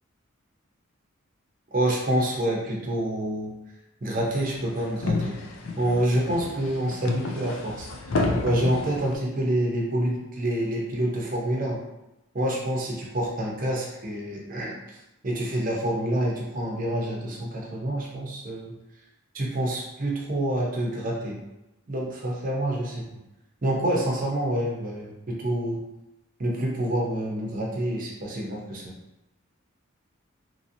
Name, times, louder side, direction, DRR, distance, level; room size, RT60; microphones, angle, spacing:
voice 1, 1.7-3.5 4.0-5.4 5.8-7.9 8.4-11.8 12.3-15.0 15.2-18.7 19.3-21.4 21.9-23.0 23.6-25.8 26.4-28.9, right 1 dB, 40° right, -2 dB, 0.6 m, -27 dB
sound 1, 4.1-9.2, left 3 dB, 75° left, 0.4 m, -30 dB
2.9 x 2.7 x 2.6 m, 0.93 s
head